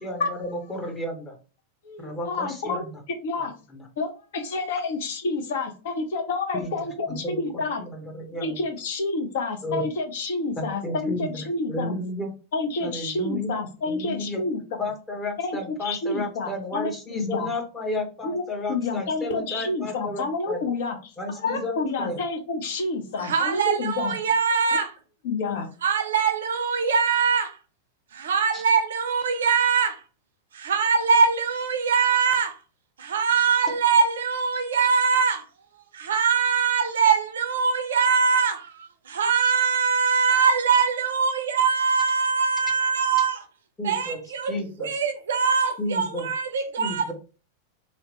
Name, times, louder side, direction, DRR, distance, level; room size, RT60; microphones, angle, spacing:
voice 1, 0.0-1.3 2.0-2.8 6.5-6.7 7.1-7.4 7.8-8.6 9.6-9.9 10.6-11.4 11.7-12.3 12.8-13.5 13.9-14.4 14.8-20.6 21.2-22.2 28.5-28.6 43.8-44.2 44.5-44.9 45.8-46.3 46.8-47.1, left 1 dB, 15° left, 0.8 m, -32 dB
voice 2, 1.8-2.8 3.2-3.5 4.0-7.8 8.4-12.0 12.5-14.6 15.4-17.5 18.2-18.4 18.7-24.1 25.2-25.7, left 3 dB, 55° left, 0.5 m, -29 dB
voice 3, 23.2-24.9 25.8-27.6 28.1-30.0 30.5-32.6 33.0-35.5 35.9-43.4 43.8-47.1, right 6 dB, 65° right, 0.4 m, -22 dB
2.7 x 2.0 x 2.8 m
figure-of-eight pair, 90°, 0 cm